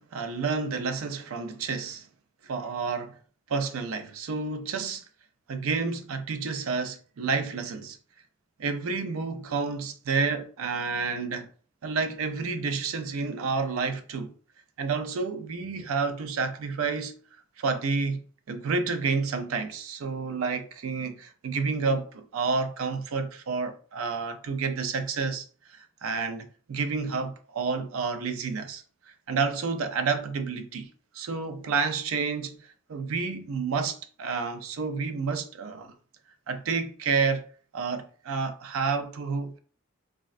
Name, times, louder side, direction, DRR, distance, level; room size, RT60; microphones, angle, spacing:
voice 1, 0.0-2.1 2.4-3.2 3.5-5.0 5.5-8.0 8.6-11.5 11.8-14.3 14.8-17.2 17.6-18.2 18.5-28.8 29.3-30.9 31.1-35.9 36.5-37.5 37.7-39.6, right 4 dB, 80° right, 0.4 m, -30 dB
3.6 x 2.0 x 2.4 m
head